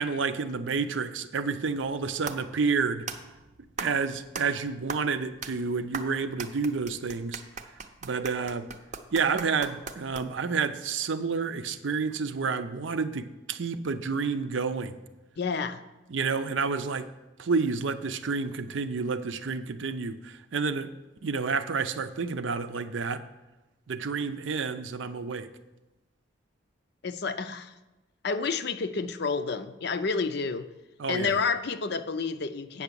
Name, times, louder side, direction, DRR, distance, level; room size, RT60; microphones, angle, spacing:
voice 1, 0.0-3.1 3.8-7.4 8.0-8.7 9.1-15.0 16.1-17.1 17.4-20.9 21.2-23.2 23.9-25.5 31.0-31.3, right 5 dB, 75° right, 11 dB, 0.6 m, -29 dB
sound 1, 1.8-10.6, right 4 dB, 40° right, 0.6 m, -40 dB
voice 2, 15.4-15.8 27.0-27.7 28.2-30.7 31.1-32.8, left 4 dB, 55° left, 11 dB, 0.5 m, -29 dB
8.5 x 6.0 x 6.8 m, 1.1 s
head